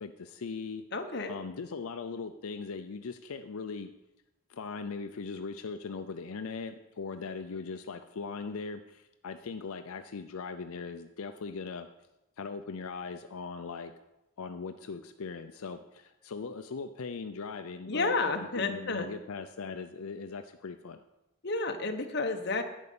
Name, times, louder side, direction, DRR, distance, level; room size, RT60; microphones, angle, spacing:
voice 1, 0.0-0.8 1.3-3.9 4.5-11.9 12.4-13.9 14.4-21.0, left 4 dB, 80° left, 8 dB, 0.5 m, -39 dB
voice 2, 0.9-1.4 17.9-19.1 21.4-22.6, left 3 dB, 50° left, 6 dB, 1.1 m, -31 dB
11.0 x 5.3 x 8.5 m, 0.94 s
head